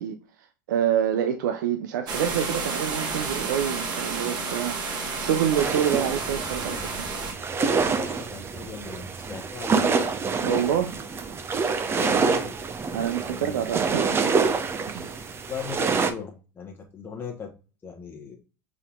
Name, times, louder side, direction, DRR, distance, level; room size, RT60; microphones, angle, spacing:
voice 1, 0.0-7.1 10.4-11.0 12.9-14.2 14.8-15.3, right 9 dB, 70° right, 0.5 m, -27 dB
sound 1, 2.1-7.3, right 4 dB, 45° right, 1.5 m, -31 dB
sound 2, 5.6-16.1, right 5 dB, 25° right, 0.7 m, -27 dB
voice 2, 7.6-10.1 11.8-12.6 13.2-13.7 15.5-17.5 17.8-18.4, left 6 dB, 20° left, 1.1 m, -38 dB
5.4 x 3.7 x 2.4 m
hypercardioid pair, 90°, 10 cm